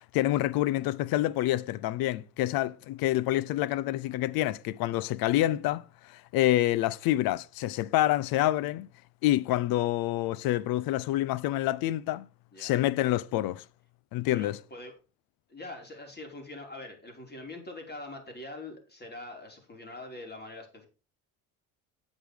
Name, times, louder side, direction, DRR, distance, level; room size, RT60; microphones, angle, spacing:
voice 1, 0.0-8.9 9.2-12.3 12.6-13.6 14.1-14.6, left 15 dB, 65° left, 0.8 m, -27 dB
voice 2, 14.3-15.0 15.5-20.9, left 2 dB, 25° left, 5.0 m, -43 dB
9.6 x 8.0 x 5.1 m
supercardioid pair, 75°, 38 cm